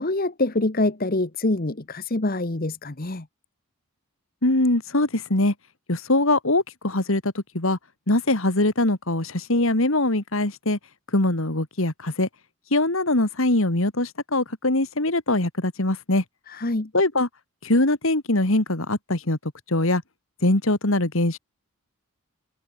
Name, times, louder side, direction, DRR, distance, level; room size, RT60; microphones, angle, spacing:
voice 1, 0.0-3.3 16.5-16.9, left 2 dB, 40° left, 1.2 m, -25 dB
voice 2, 4.4-5.5 5.9-7.8 8.1-10.8 11.1-12.3 12.7-16.2 16.9-17.3 17.6-19.4 19.7-20.0 20.4-21.4, left 2 dB, 65° left, 2.4 m, -22 dB
head